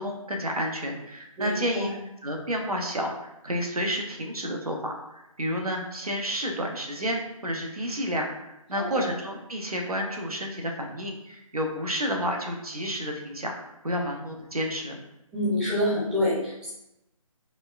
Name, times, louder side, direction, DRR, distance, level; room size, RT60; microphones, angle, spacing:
voice 1, 0.0-1.9 2.2-15.0, equal, 90° right, 2 dB, 0.8 m, -30 dB
voice 2, 1.4-1.9 8.8-9.0 15.3-16.7, left 1 dB, 5° right, -13 dB, 0.5 m, -27 dB
4.2 x 2.2 x 2.4 m, 0.89 s
figure-of-eight pair, 150°, 18 cm